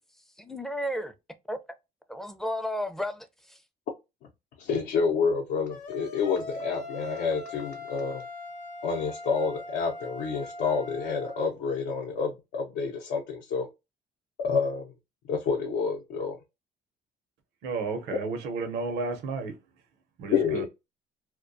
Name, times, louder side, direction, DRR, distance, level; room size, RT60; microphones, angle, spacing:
voice 1, 0.4-1.1 1.5-1.6 2.1-3.6, equal, ahead, 0.4 m, -33 dB
voice 2, 4.6-8.2 8.8-13.7 14.4-14.9 15.3-16.4 20.3-20.6, left 5 dB, 80° left, 0.6 m, -28 dB
sound 1, 5.7-11.5, left 2 dB, 50° left, 0.7 m, -41 dB
voice 3, 17.6-19.5 20.2-20.6, right 4 dB, 80° right, 0.7 m, -32 dB
2.2 x 2.2 x 2.5 m
cardioid pair, 110°, 17 cm